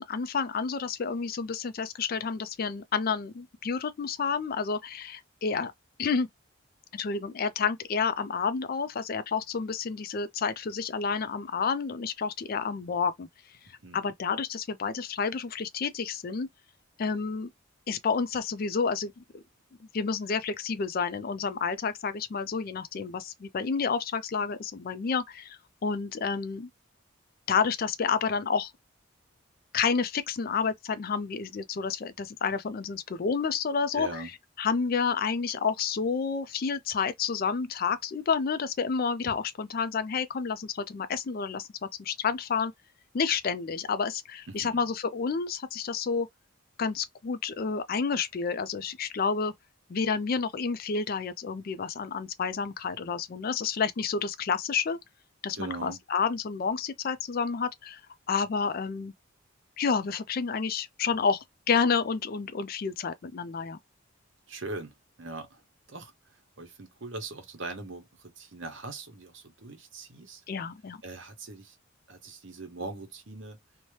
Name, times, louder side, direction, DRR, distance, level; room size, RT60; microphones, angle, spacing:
voice 1, 0.0-5.7 6.0-6.3 6.9-13.3 13.9-16.5 17.0-17.5 17.9-19.4 19.9-26.7 27.5-28.7 29.7-34.2 34.6-42.7 43.1-46.3 46.8-49.5 49.9-55.0 55.4-58.0 58.3-59.1 59.8-63.8 70.5-71.0, left 5 dB, 45° left, 0.4 m, -30 dB
voice 2, 13.7-14.0 33.9-34.3 44.5-44.9 55.6-56.0 64.5-65.6 65.9-66.1 66.6-70.4 71.0-71.8 72.1-73.6, right 3 dB, 60° right, 0.9 m, -41 dB
2.7 x 2.1 x 3.1 m
head